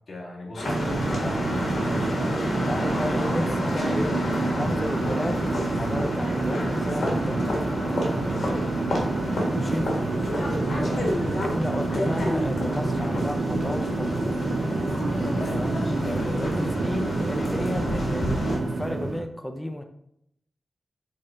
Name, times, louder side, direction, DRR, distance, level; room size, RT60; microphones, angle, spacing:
voice 1, 0.1-1.3 10.7-11.1 15.6-16.3, left 1 dB, 50° left, -4 dB, 2.0 m, -37 dB
sound 1, 0.5-18.6, left 1 dB, 70° left, 1.8 m, -31 dB
sound 2, 0.6-19.2, right 2 dB, 65° right, 1.7 m, -27 dB
voice 2, 1.8-8.6 9.5-9.9 11.0-14.4 15.5-15.7 16.3-19.8, left 1 dB, 10° left, 5 dB, 0.6 m, -33 dB
6.4 x 3.8 x 4.3 m, 0.74 s
wide cardioid pair, 115°, 0 cm